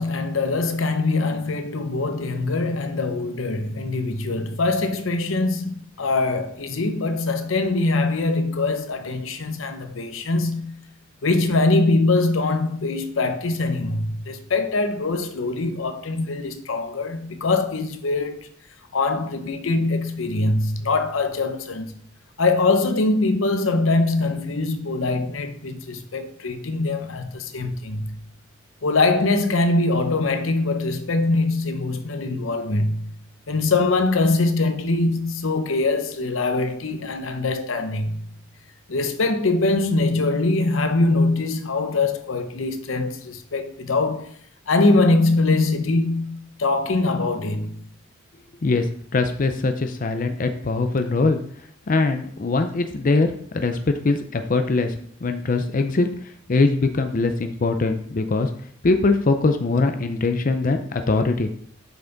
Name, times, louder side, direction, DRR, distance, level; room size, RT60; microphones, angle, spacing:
voice 1, 0.0-10.8 11.2-18.5 18.9-21.9 22.4-28.2 28.8-33.2 33.5-38.3 38.9-44.3 44.7-47.8, left 3 dB, 85° left, 0.8 m, -23 dB
voice 2, 49.1-51.4 51.9-53.3 53.5-56.1 56.5-58.5 58.8-61.5, left 3 dB, 45° left, 0.5 m, -22 dB
7.1 x 5.9 x 3.9 m
head